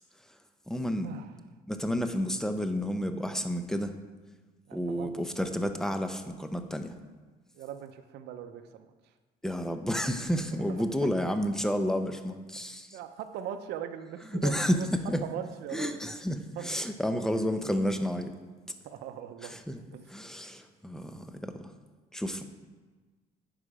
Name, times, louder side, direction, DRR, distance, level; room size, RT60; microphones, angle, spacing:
voice 1, 0.7-1.1 1.7-3.9 4.7-6.9 9.4-13.0 14.3-15.2 15.7-18.3 19.4-19.8 20.1-21.5 22.1-22.4, equal, 5° left, 7 dB, 0.7 m, -30 dB
voice 2, 4.7-5.5 7.6-8.9 10.7-11.1 12.9-14.9 15.2-16.0 16.6-16.9 18.8-19.5 19.9-20.1, right 9 dB, 80° right, 8 dB, 0.6 m, -40 dB
10.0 x 5.6 x 4.9 m, 1.3 s
cardioid pair, 110°, 17 cm